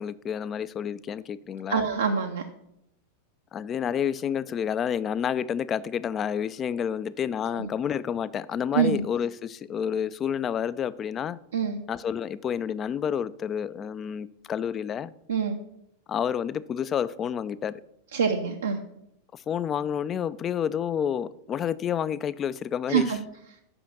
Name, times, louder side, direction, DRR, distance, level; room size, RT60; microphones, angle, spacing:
voice 1, 0.0-1.9 3.5-11.4 11.9-15.1 16.1-17.7 19.3-23.2, left 8 dB, 25° left, 0.3 m, -29 dB
voice 2, 1.7-2.4 7.6-7.7 8.7-9.0 11.5-11.8 15.3-15.6 18.1-18.8 22.9-23.2, right 6 dB, 70° right, 0.6 m, -25 dB
6.2 x 5.7 x 6.3 m
figure-of-eight pair, 90°, 0 cm